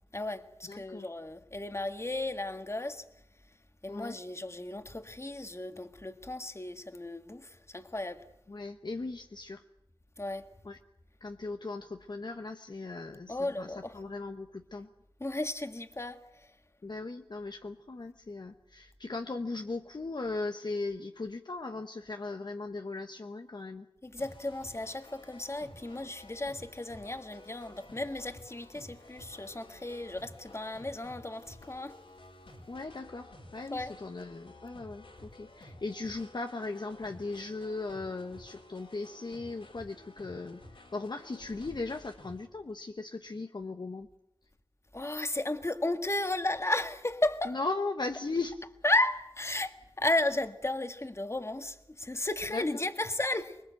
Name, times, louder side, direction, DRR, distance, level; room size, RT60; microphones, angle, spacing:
voice 1, 0.1-3.0 3.8-8.2 10.2-10.5 13.3-14.0 15.2-16.2 24.0-32.0 33.7-34.0 44.9-47.6 48.8-53.6, left 2 dB, 30° left, 1.6 m, -34 dB
voice 2, 0.7-1.1 3.9-4.2 8.5-9.6 10.6-10.8 11.2-14.9 16.8-23.9 32.7-40.6 40.9-44.1 47.5-48.6 52.5-52.6, left 3 dB, 50° left, 1.0 m, -38 dB
sound 1, 24.2-42.5, left 1 dB, 75° left, 4.5 m, -53 dB
25.0 x 21.5 x 7.8 m
wide cardioid pair, 80°, 9 cm